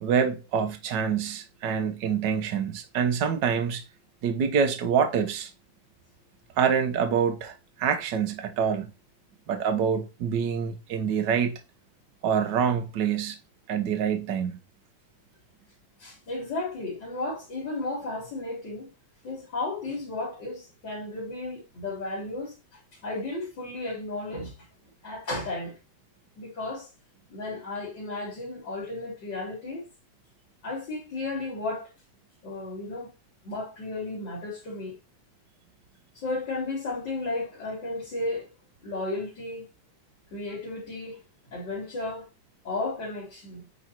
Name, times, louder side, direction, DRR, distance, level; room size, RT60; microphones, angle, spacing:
voice 1, 0.0-3.8 4.2-5.5 6.6-8.9 9.5-11.6 12.2-13.4 13.7-14.6, right 7 dB, 70° right, 1.0 m, -26 dB
voice 2, 16.0-18.9 19.2-24.7 25.0-25.8 26.4-26.9 27.3-29.8 30.6-31.9 32.4-33.1 33.4-35.0 36.1-38.5 38.8-39.7 40.3-41.2 41.5-42.3 42.6-43.7, left 2 dB, 35° left, 3.9 m, -34 dB
9.6 x 4.2 x 4.4 m
omnidirectional pair, 3.6 m